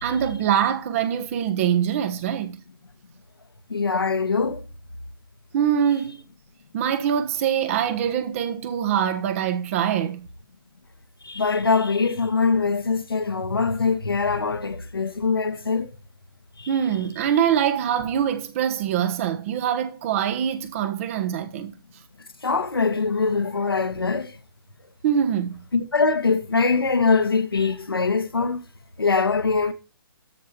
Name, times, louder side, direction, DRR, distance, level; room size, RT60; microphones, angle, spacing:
voice 1, 0.0-2.6 5.5-6.2 6.7-10.3 16.7-21.7 25.0-25.6, right 9 dB, 35° right, 1.3 m, -24 dB
voice 2, 3.7-4.6 11.2-15.9 16.6-16.7 22.4-24.3 25.7-28.6 29.0-29.7, left 4 dB, 85° left, 1.7 m, -23 dB
13.0 x 5.0 x 4.4 m
figure-of-eight pair, 140°, 12 cm